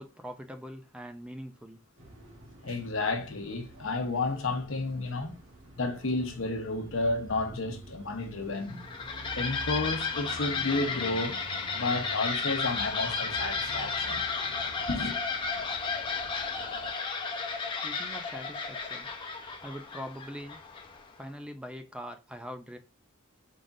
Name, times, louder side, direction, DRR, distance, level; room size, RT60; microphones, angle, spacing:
voice 1, 0.0-1.8 17.8-19.1 19.6-20.6 21.2-22.8, equal, 5° right, 0.4 m, -42 dB
sound 1, 2.0-16.9, right 1 dB, 65° right, 1.3 m, -48 dB
voice 2, 2.6-5.4 5.8-8.8 9.4-11.4 11.7-14.2 14.9-15.2, left 3 dB, 70° left, 0.9 m, -31 dB
sound 2, 8.6-21.1, left 4 dB, 25° left, 0.8 m, -33 dB
5.0 x 3.7 x 2.6 m
head